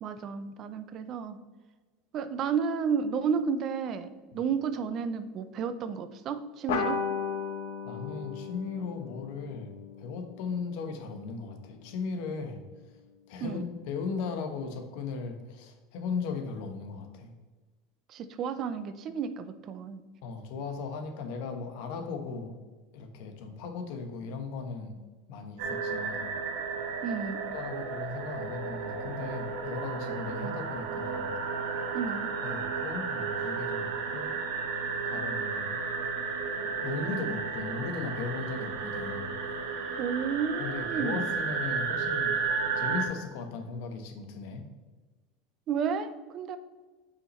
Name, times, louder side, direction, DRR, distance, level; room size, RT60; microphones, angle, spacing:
voice 1, 0.0-1.4 2.1-7.0 13.4-13.6 18.1-20.0 27.0-27.4 30.4-30.6 31.9-32.3 40.0-41.3 45.7-46.6, right 6 dB, 35° right, 11 dB, 0.5 m, -32 dB
sound 1, 6.7-11.6, left 6 dB, 85° left, 0.9 m, -36 dB
voice 2, 7.8-12.6 13.3-17.3 20.2-22.5 22.9-25.0 25.3-26.3 27.5-31.3 32.4-34.3 35.0-35.7 36.6-39.4 40.6-42.4 42.7-44.7, left 4 dB, 65° left, 6 dB, 1.1 m, -37 dB
sound 2, 25.6-43.1, right 5 dB, 80° right, 1.1 m, -33 dB
8.0 x 5.7 x 3.1 m, 1.3 s
supercardioid pair, 150°, 0 cm